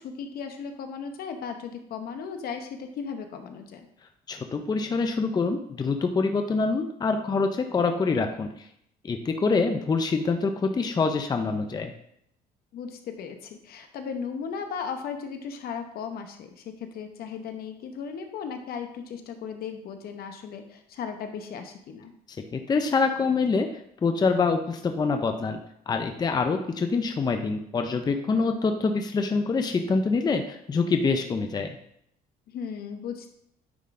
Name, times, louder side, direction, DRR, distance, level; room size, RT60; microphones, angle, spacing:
voice 1, 0.0-3.9 12.7-22.1 28.3-28.6 32.5-33.3, left 6 dB, 65° left, 6 dB, 1.0 m, -36 dB
voice 2, 4.3-8.7 9.0-11.9 22.3-23.7 24.0-25.6 25.9-31.8, left 4 dB, 25° left, 6 dB, 0.5 m, -25 dB
9.4 x 3.7 x 3.7 m, 0.73 s
cardioid pair, 110°, 17 cm